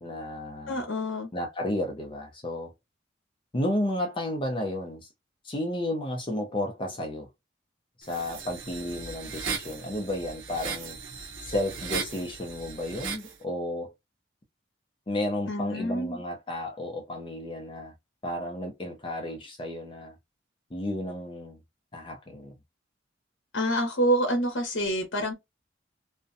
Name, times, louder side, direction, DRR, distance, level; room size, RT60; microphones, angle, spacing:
voice 1, 0.0-0.8 1.3-2.7 3.5-5.1 5.4-7.3 8.0-11.0 11.4-13.9 15.1-17.9 18.2-20.2 20.7-21.6 21.9-22.5, left 1 dB, 25° left, 0.4 m, -32 dB
voice 2, 0.7-1.3 15.5-16.2 23.5-25.3, equal, 75° left, 0.7 m, -27 dB
sound 1, 8.0-13.3, right 5 dB, 80° right, 0.6 m, -37 dB
2.5 x 2.1 x 2.5 m
head